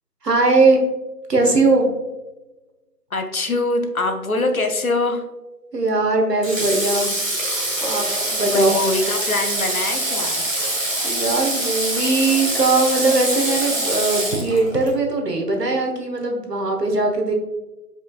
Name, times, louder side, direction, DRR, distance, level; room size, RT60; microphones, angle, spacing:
voice 1, 0.2-0.8 1.3-1.9 5.7-7.1 7.8-8.8 11.0-17.3, right 3 dB, 75° right, 2 dB, 1.2 m, -20 dB
voice 2, 3.1-5.2 8.5-10.4, left 2 dB, 60° left, 5 dB, 0.7 m, -23 dB
Water / Water tap faucet, 6.4-14.9, right 1 dB, 55° right, 1.0 m, -24 dB
5.0 x 4.1 x 2.4 m, 1.1 s
figure-of-eight pair, 175°, 48 cm